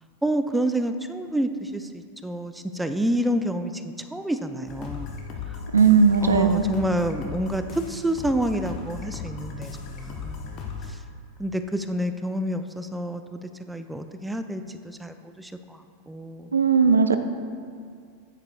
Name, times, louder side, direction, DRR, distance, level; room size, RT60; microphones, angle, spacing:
voice 1, 0.2-5.2 5.5-5.6 6.2-10.6 10.9-11.0 11.4-16.5, right 1 dB, 5° right, 8 dB, 0.4 m, -28 dB
sound 1, 4.7-10.9, left 5 dB, 35° left, 0.9 m, -37 dB
voice 2, 5.7-6.6 16.5-17.2, right 5 dB, 75° right, 9 dB, 0.4 m, -17 dB
9.6 x 8.8 x 2.3 m, 2.2 s
figure-of-eight pair, 90°, 0 cm